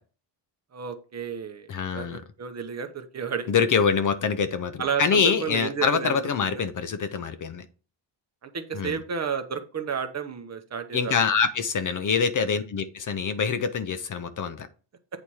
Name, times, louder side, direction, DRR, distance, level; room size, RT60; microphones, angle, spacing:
voice 1, 0.7-1.7 1.9-3.5 4.8-6.2 6.5-6.6 8.4-11.2, right 7 dB, 30° right, 7 dB, 0.8 m, -32 dB
voice 2, 1.7-2.2 3.5-7.7 8.7-9.0 10.9-14.7, left 6 dB, 40° left, 10 dB, 0.6 m, -25 dB
8.7 x 4.2 x 4.7 m, 0.36 s
cardioid pair, 165°, 50 cm